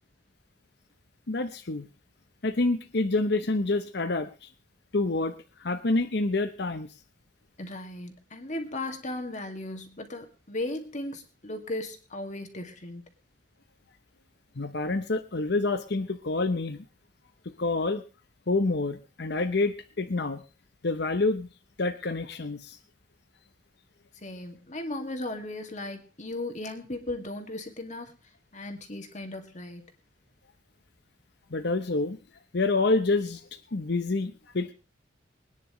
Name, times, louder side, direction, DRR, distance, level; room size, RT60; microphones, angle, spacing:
voice 1, 1.3-1.9 2.4-4.5 4.9-6.9 14.5-16.8 17.4-18.0 18.5-20.4 20.8-21.5 21.8-22.8 31.5-32.2 32.5-34.7, left 3 dB, 65° left, 9 dB, 0.9 m, -27 dB
voice 2, 7.6-13.0 24.2-28.1 28.5-29.8, left 2 dB, 40° left, 5 dB, 2.2 m, -36 dB
23.5 x 10.0 x 3.2 m, 0.31 s
head